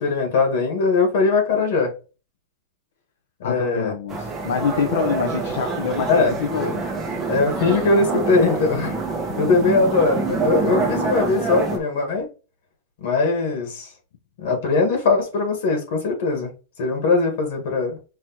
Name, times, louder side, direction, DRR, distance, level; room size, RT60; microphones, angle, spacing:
voice 1, 0.0-1.9 3.4-3.9 6.1-6.4 7.3-9.0 9.4-12.3 13.0-13.9 14.4-16.5 16.8-18.0, left 3 dB, 55° left, 1.7 m, -20 dB
voice 2, 3.4-6.8, left 6 dB, 80° left, 0.9 m, -25 dB
sound 1, 4.1-11.8, right 3 dB, 10° right, 1.1 m, -26 dB
6.0 x 3.0 x 2.9 m
supercardioid pair, 175°, 0 cm